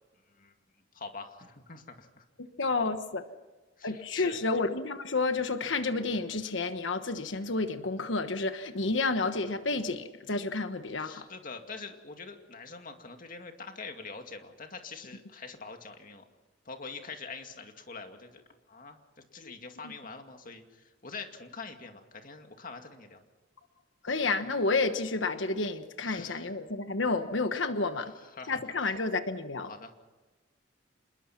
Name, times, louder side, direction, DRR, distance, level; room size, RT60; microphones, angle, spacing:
voice 1, 0.9-2.2 3.8-4.4 11.0-16.2 16.7-18.4 18.7-19.0 19.3-23.2 26.0-26.5 28.0-28.9 29.7-29.9, left 4 dB, 45° left, 2.3 m, -45 dB
voice 2, 2.6-3.2 3.8-11.2 19.4-19.5 24.0-28.1 28.5-29.7, left 3 dB, 75° left, 1.2 m, -30 dB
27.0 x 21.0 x 5.9 m
head